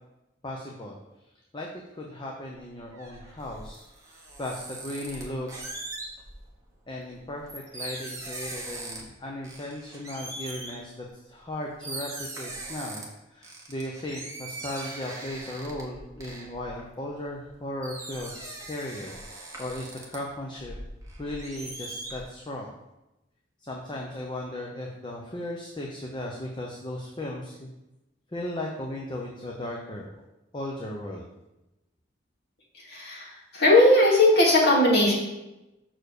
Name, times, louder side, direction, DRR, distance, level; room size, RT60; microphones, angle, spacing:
voice 1, 0.4-1.0 1.5-5.5 6.9-13.0 13.3-20.8 21.2-22.7 23.6-27.7 28.3-30.2 30.5-31.2, left 1 dB, 25° left, -1 dB, 0.8 m, -36 dB
sound 1, 2.7-6.5 7.0-9.2 9.4-10.8 11.4-11.5 11.8-13.0 13.4-17.5 17.8-20.2 20.6-22.2, right 2 dB, 15° right, 1.4 m, -40 dB
voice 2, 32.7-35.1, left 1 dB, 55° left, -4 dB, 2.4 m, -19 dB
6.1 x 4.6 x 6.6 m, 0.96 s
head